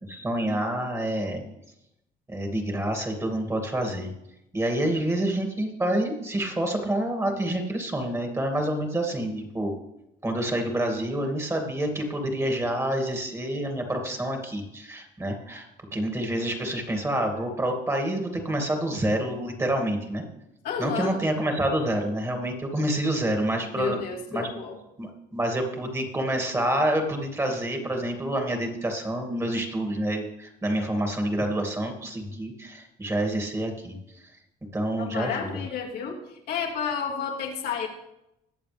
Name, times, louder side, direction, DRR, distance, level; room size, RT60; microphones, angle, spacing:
voice 1, 0.0-1.4 2.3-4.1 4.5-9.7 10.2-15.7 15.9-20.2 20.8-24.0 24.3-24.5 25.0-34.0 34.7-35.6, right 1 dB, 15° right, 3 dB, 2.4 m, -28 dB
voice 2, 20.6-21.1 23.8-24.8 35.0-36.2 36.5-37.9, left 6 dB, 70° left, 0 dB, 2.4 m, -31 dB
21.5 x 7.2 x 3.5 m, 0.84 s
cardioid pair, 110°, 17 cm